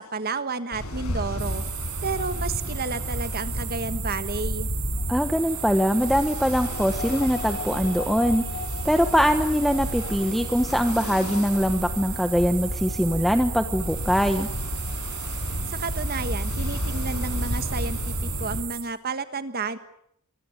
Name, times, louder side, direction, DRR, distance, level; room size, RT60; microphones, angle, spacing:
voice 1, 0.0-1.6 2.0-4.7 15.7-19.8, right 4 dB, 45° right, 11 dB, 1.5 m, -31 dB
Ocean, 0.7-18.6, equal, 75° left, 5.7 m, -32 dB
sound 1, 1.4-18.8, right 14 dB, 80° right, 4.4 m, -36 dB
sound 2, 5.0-17.2, left 4 dB, 45° left, 6.5 m, -42 dB
voice 2, 5.1-8.4 8.8-14.5, equal, ahead, 7 dB, 1.2 m, -22 dB
26.0 x 20.5 x 9.2 m, 0.75 s
head